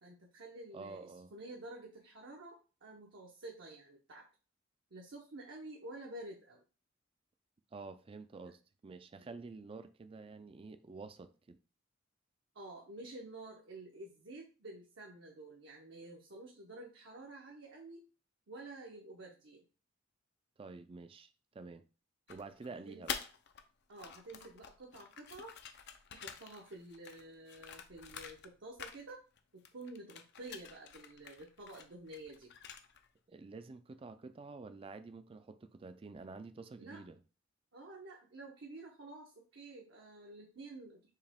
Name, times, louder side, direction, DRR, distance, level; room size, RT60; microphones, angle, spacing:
voice 1, 0.0-4.3 4.9-6.6 9.2-9.4 12.5-18.1 18.5-19.6 22.7-23.1 23.9-25.6 26.1-29.2 29.5-32.5 36.8-37.0 37.7-41.1, right 2 dB, 65° right, 0.8 m, -50 dB
voice 2, 0.7-1.3 7.7-11.6 20.6-21.8 22.3-23.2 33.3-37.2, right 3 dB, 30° right, 0.3 m, -49 dB
sound 1, 22.3-23.6 23.9-28.5 28.8-29.4 29.6-33.1, left 7 dB, 60° left, 0.5 m, -47 dB
4.7 x 2.9 x 3.5 m
head